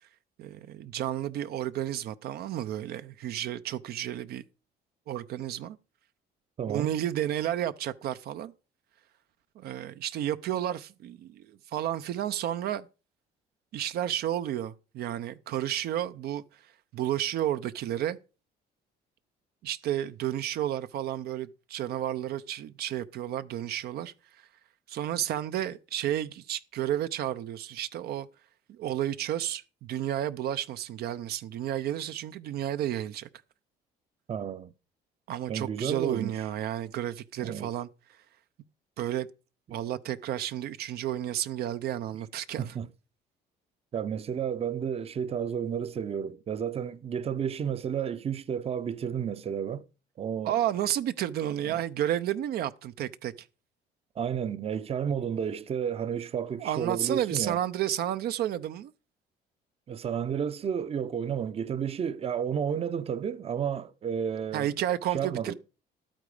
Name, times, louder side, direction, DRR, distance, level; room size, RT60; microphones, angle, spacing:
voice 1, 0.4-4.4 5.1-5.8 6.7-8.5 9.6-12.9 13.7-16.4 16.9-18.2 19.6-24.1 24.9-28.3 28.7-33.3 35.3-37.9 39.0-39.3 39.7-42.7 50.4-53.5 56.6-58.9 64.5-65.5, right 11 dB, 70° right, 0.7 m, -31 dB
voice 2, 6.6-6.9 34.3-34.7 35.5-36.4 37.4-37.7 39.7-39.8 42.6-42.9 43.9-49.8 50.2-50.6 51.6-51.8 54.2-57.6 59.9-64.7 65.1-65.5, right 8 dB, 35° right, 0.7 m, -32 dB
12.0 x 9.0 x 4.9 m
cardioid pair, 110°, 17 cm